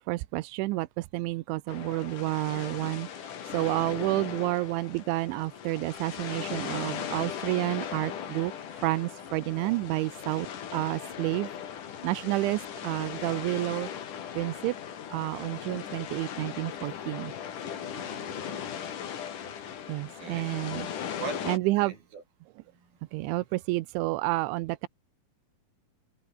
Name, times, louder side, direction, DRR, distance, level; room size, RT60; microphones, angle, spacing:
voice 1, 0.1-10.5 10.7-11.5 12.0-13.9 14.4-14.7 15.1-17.3 19.9-20.9 21.4-21.9 23.1-24.9, right 20 dB, 90° right, 3.2 m, -30 dB
sound 1, 1.7-21.6, left 8 dB, 50° left, 3.4 m, -38 dB
voice 2, 17.7-18.7 20.0-20.5 21.2-21.5 21.8-22.2 22.7-22.9, right 5 dB, 55° right, 7.3 m, -42 dB
omnidirectional pair, 5.3 m